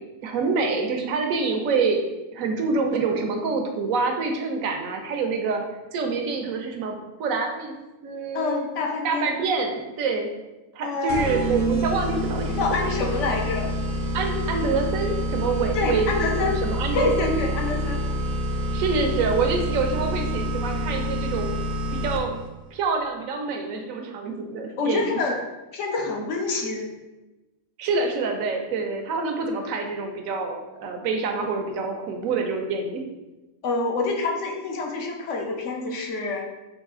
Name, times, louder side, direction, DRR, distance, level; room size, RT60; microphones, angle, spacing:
voice 1, 0.2-2.0 2.3-5.6 5.9-7.7 8.0-8.7 9.0-10.3 10.7-12.5 14.1-17.4 18.7-21.6 21.9-22.4 22.7-25.2 27.8-33.0, right 4 dB, 75° right, 4 dB, 1.0 m, -26 dB
voice 2, 8.3-9.3 10.8-11.3 12.5-13.7 15.7-16.6 16.9-18.1 24.8-25.4 25.7-26.9 33.6-36.5, left 3 dB, 65° left, 1 dB, 1.0 m, -26 dB
sound 1, 11.1-22.5, equal, 55° right, 0.6 m, -27 dB
4.0 x 2.9 x 3.6 m, 1.1 s
omnidirectional pair, 1.4 m